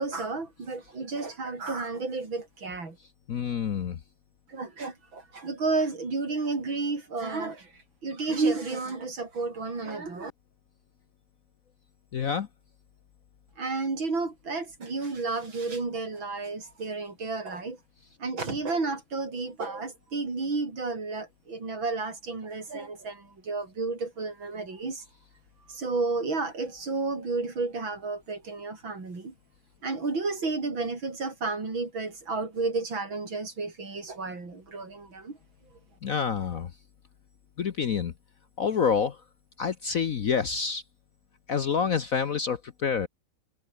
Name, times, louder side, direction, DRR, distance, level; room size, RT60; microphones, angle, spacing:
voice 1, 0.0-3.0 4.5-7.7 8.0-10.3 13.6-17.8 18.2-25.0 25.7-29.3 29.8-35.4, right 3 dB, 70° right, 5.4 m, -32 dB
voice 2, 3.3-4.0 12.1-12.5 36.0-36.7 37.6-38.1 38.6-39.2 39.6-40.8 41.5-43.1, left 6 dB, 50° left, 1.1 m, -27 dB
omnidirectional pair, 2.2 m